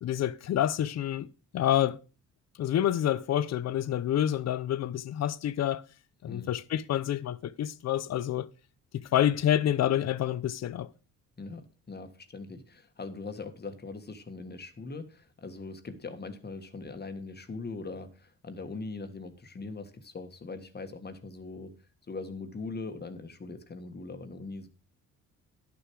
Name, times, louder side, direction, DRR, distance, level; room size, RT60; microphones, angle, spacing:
voice 1, 0.0-1.3 1.5-2.0 2.6-5.8 6.2-8.5 8.9-10.9, left 11 dB, 60° left, 0.7 m, -28 dB
voice 2, 11.4-21.7 22.1-24.7, left 3 dB, 35° left, 1.6 m, -41 dB
11.0 x 6.9 x 4.7 m
cardioid pair, 90°, 30 cm